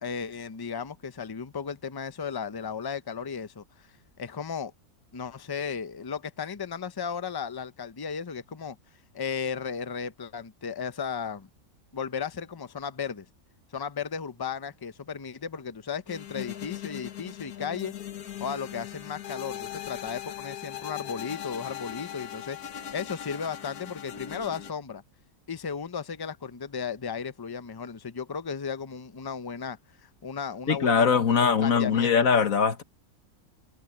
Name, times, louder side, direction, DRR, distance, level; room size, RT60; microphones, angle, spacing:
voice 1, 0.0-3.9 4.2-4.7 5.1-8.8 9.1-11.5 11.9-13.3 13.7-17.9 18.4-25.0 25.5-32.1, left 6 dB, 25° left, 0.5 m, -35 dB
sound 1, 16.1-24.7, left 11 dB, 90° left, 1.7 m, -39 dB
voice 2, 30.7-32.8, left 6 dB, 65° left, 1.8 m, -22 dB
omnidirectional pair, 1.6 m